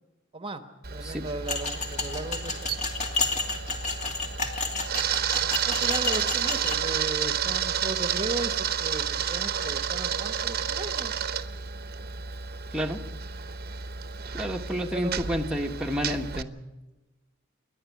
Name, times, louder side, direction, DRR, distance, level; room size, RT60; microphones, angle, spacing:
Camera, 0.8-16.4, right 8 dB, 50° right, 1.0 m, -31 dB
voice 1, 0.9-2.7 5.6-11.1 14.7-15.2, right 2 dB, 25° right, 8 dB, 1.2 m, -36 dB
sound 1, 1.5-6.8, left 3 dB, 35° left, 2.6 m, -31 dB
voice 2, 14.3-16.5, equal, 5° right, 1 dB, 1.3 m, -30 dB
28.5 x 11.0 x 9.5 m, 1.1 s
head